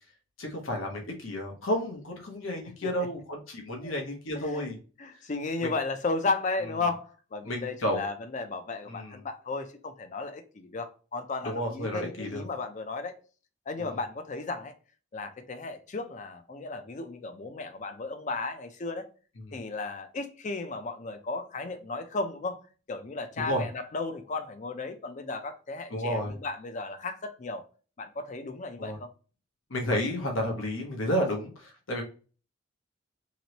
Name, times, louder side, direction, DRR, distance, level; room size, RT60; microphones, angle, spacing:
voice 1, 0.4-4.8 5.6-5.7 7.4-8.0 8.9-9.2 11.4-12.4 13.8-13.9 19.4-19.6 23.4-23.6 25.9-26.4 28.8-29.0 29.7-32.0, equal, 80° left, 0.9 m, -31 dB
voice 2, 4.3-4.7 5.0-13.2 13.7-14.7 15.1-19.1 19.5-22.6 22.9-27.6 28.0-29.1, left 3 dB, 35° left, 0.4 m, -34 dB
3.0 x 3.0 x 2.8 m
head